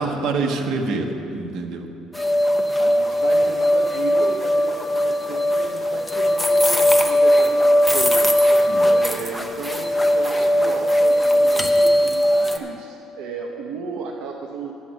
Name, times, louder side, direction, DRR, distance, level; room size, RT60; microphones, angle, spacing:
voice 1, 0.0-1.9 8.7-8.9, right 3 dB, 65° right, 3 dB, 1.2 m, -26 dB
sound 1, 2.1-12.6, equal, 5° left, 0.6 m, -19 dB
voice 2, 2.8-8.3 8.9-14.7, right 4 dB, 80° right, 1 dB, 0.8 m, -34 dB
11.0 x 7.4 x 8.0 m, 2.8 s
cardioid pair, 170°, 0 cm